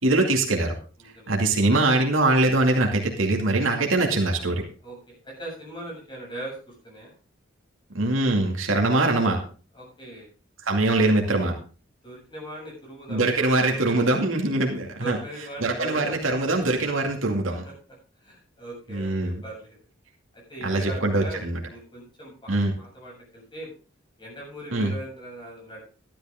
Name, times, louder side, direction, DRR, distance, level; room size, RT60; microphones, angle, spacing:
voice 1, 0.0-0.7 1.3-4.6 7.9-9.4 10.6-11.5 13.1-15.2 15.6-17.6 18.9-19.4 20.6-21.6 22.5-22.7 24.7-24.9, right 2 dB, 90° right, 1 dB, 2.4 m, -22 dB
voice 2, 1.0-1.3 4.8-7.1 9.7-10.3 12.0-13.8 15.0-16.2 17.6-17.7 18.2-19.8 20.3-23.7 24.2-25.8, right 1 dB, 25° left, -2 dB, 7.6 m, -40 dB
13.0 x 12.0 x 3.7 m, 0.37 s
head